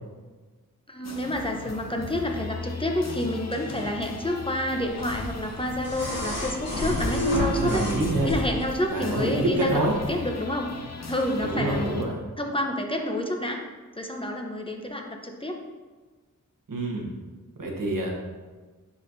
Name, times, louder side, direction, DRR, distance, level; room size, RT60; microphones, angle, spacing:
voice 1, 0.9-7.8 8.2-9.7 10.1-10.7 11.1-12.0 12.4-13.6 14.0-15.6, left 1 dB, 15° left, 2 dB, 0.8 m, -29 dB
sound 1, 1.0-12.0, left 4 dB, 55° left, 0.8 m, -39 dB
sound 2, 5.0-8.7 10.0-10.1, equal, 75° left, 2.1 m, -29 dB
voice 2, 7.5-8.3 8.9-9.9 11.4-12.2 16.7-17.1 17.6-18.1, right 1 dB, 85° right, -1 dB, 1.3 m, -26 dB
9.7 x 4.3 x 2.6 m, 1.3 s
wide cardioid pair, 80°, 32 cm